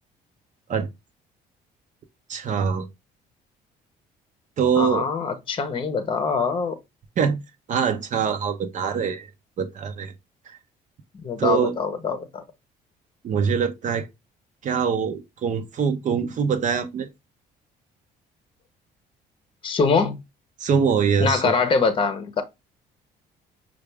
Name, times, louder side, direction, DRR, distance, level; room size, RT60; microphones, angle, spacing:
voice 1, 2.3-2.9 4.6-5.1 7.2-7.4 7.7-9.3 9.6-10.1 10.5-10.6 11.4-11.7 13.2-14.1 14.6-17.1 20.6-21.5, right 6 dB, 45° right, 0.7 m, -23 dB
voice 2, 4.8-6.8 11.2-12.4 19.6-20.2 21.2-22.4, left 5 dB, 30° left, 0.8 m, -23 dB
5.7 x 2.4 x 3.3 m
cardioid pair, 110°, 17 cm